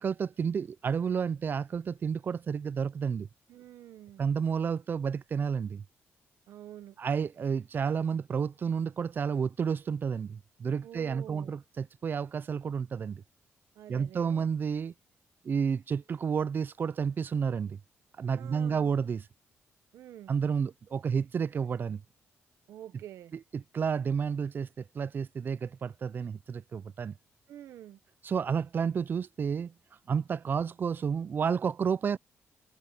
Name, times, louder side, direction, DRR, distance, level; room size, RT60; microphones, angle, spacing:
voice 1, 0.0-3.3 4.2-5.8 7.0-13.2 13.9-14.9 15.4-17.8 18.2-19.2 20.3-22.0 23.5-27.1 28.2-29.7 30.1-32.2, right 6 dB, 45° right, 0.4 m, -31 dB
voice 2, 3.5-4.3 6.5-7.0 10.8-11.5 13.7-14.5 18.3-18.9 19.9-20.3 22.7-23.4 27.5-28.0, right 11 dB, 85° right, 1.2 m, -47 dB
cardioid pair, 100°, 5 cm